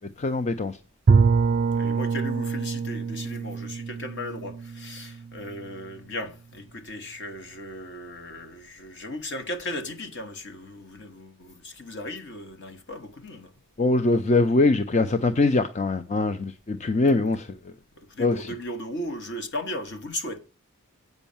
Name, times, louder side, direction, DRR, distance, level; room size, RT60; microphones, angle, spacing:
voice 1, 0.2-0.8 13.8-17.6 18.2-18.5, left 2 dB, 30° left, 0.5 m, -23 dB
Bowed string instrument, 1.1-5.9, right 5 dB, 40° right, 0.4 m, -25 dB
voice 2, 1.8-13.5 18.0-20.4, left 1 dB, 55° left, 1.4 m, -36 dB
8.1 x 5.4 x 7.1 m
head